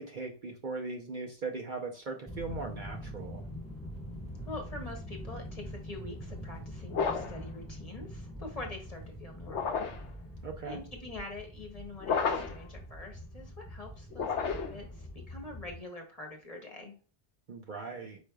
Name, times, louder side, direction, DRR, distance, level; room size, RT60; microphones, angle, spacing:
voice 1, 0.0-3.4 10.4-10.8 17.5-18.2, right 4 dB, 50° right, 2 dB, 0.8 m, -39 dB
sound 1, 2.3-15.8, equal, 5° left, 1.5 m, -44 dB
voice 2, 4.4-9.9 10.6-16.9, left 2 dB, 35° left, 2 dB, 1.1 m, -45 dB
sound 2, 6.9-7.5 9.5-10.1 12.0-12.7 14.1-14.9, left 5 dB, 75° left, 1.0 m, -32 dB
4.9 x 4.4 x 2.3 m, 0.37 s
omnidirectional pair, 1.2 m